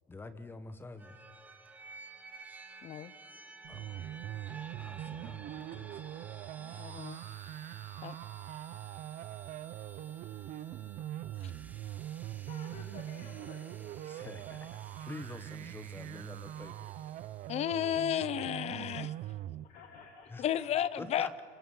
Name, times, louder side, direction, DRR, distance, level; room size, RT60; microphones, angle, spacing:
voice 1, 0.1-1.2 3.7-4.2 4.8-6.0 6.6-6.8 14.0-17.1 20.3-20.4 21.0-21.4, left 3 dB, 10° left, 11 dB, 1.0 m, -47 dB
sound 1, 1.0-17.7, right 3 dB, 10° right, 1.2 m, -53 dB
voice 2, 2.8-3.1 6.6-7.2 8.0-8.1 17.5-19.1 20.4-21.4, left 10 dB, 40° left, 18 dB, 0.6 m, -33 dB
sound 2, 3.6-19.7, right 12 dB, 45° right, 0.6 m, -42 dB
voice 3, 12.0-14.0 19.6-21.4, left 5 dB, 55° left, 2 dB, 2.3 m, -54 dB
29.5 x 26.0 x 5.6 m, 2.3 s
cardioid pair, 180°, 18 cm